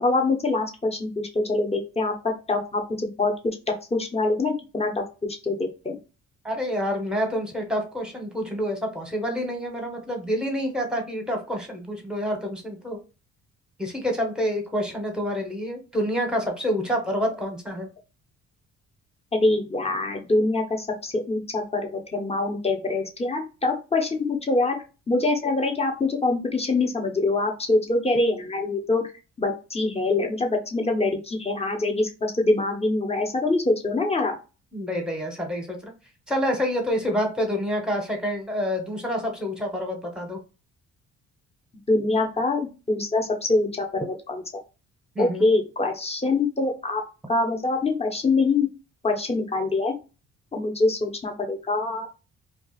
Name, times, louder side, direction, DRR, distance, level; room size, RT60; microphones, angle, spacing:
voice 1, 0.0-3.3 3.9-5.0 5.4-6.0 19.3-24.8 25.1-29.0 29.4-34.3 41.9-44.4 45.2-47.0 47.3-48.7 49.0-50.0 50.5-52.1, left 2 dB, 20° left, 2 dB, 0.9 m, -24 dB
voice 2, 6.4-13.0 13.8-17.9 34.7-35.9 36.3-40.4 45.1-45.5, equal, 5° right, 2 dB, 1.1 m, -27 dB
2.4 x 2.3 x 4.0 m, 0.31 s
cardioid pair, 90°, 30 cm